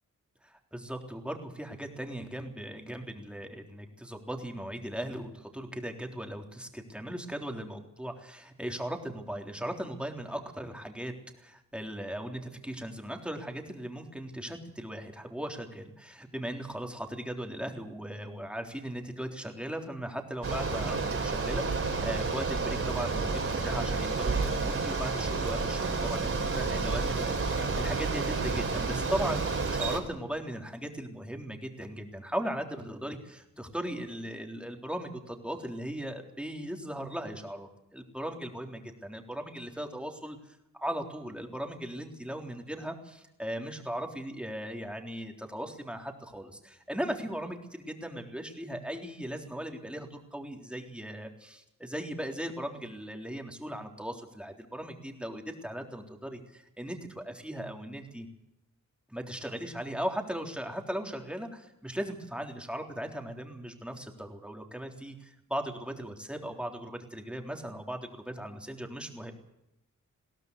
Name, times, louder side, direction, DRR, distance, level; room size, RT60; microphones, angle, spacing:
voice 1, 0.4-58.3 59.1-69.3, right 1 dB, 5° right, 3 dB, 3.6 m, -38 dB
Bicycle, 20.4-30.0, right 4 dB, 45° right, 4.4 m, -30 dB
21.5 x 17.0 x 8.2 m, 0.85 s
wide cardioid pair, 100°, 31 cm